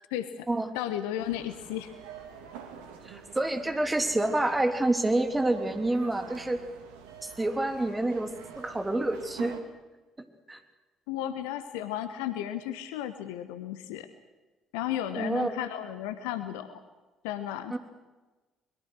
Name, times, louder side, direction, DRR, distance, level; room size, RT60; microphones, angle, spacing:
voice 1, 0.1-0.5 0.7-1.9 11.1-14.1 14.7-16.8 17.2-17.8, left 11 dB, 70° left, 11 dB, 1.2 m, -34 dB
sound 1, 1.2-9.6, right 7 dB, 70° right, 2.4 m, -47 dB
voice 2, 3.0-6.6 7.2-9.6 10.5-10.6 15.2-15.5 17.7-17.8, right 2 dB, 15° right, 6 dB, 3.3 m, -28 dB
23.5 x 22.0 x 6.4 m, 1.2 s
figure-of-eight pair, 50°, 0 cm